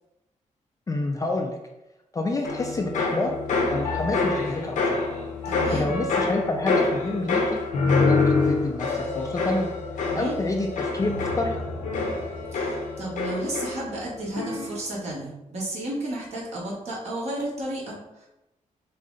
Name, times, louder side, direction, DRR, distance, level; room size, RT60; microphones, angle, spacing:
voice 1, 0.9-1.6 2.1-3.3 3.7-5.1 5.7-7.6 8.0-9.7 10.1-11.7, left 2 dB, 25° left, 2 dB, 0.4 m, -28 dB
sound 1, 2.4-14.1 14.3-14.9, left 3 dB, 75° left, 0.8 m, -26 dB
voice 2, 5.4-5.9 10.0-10.3 12.5-18.3, right 1 dB, 55° right, -5 dB, 1.1 m, -33 dB
5.5 x 2.0 x 3.7 m, 0.96 s
wide cardioid pair, 115°, 13 cm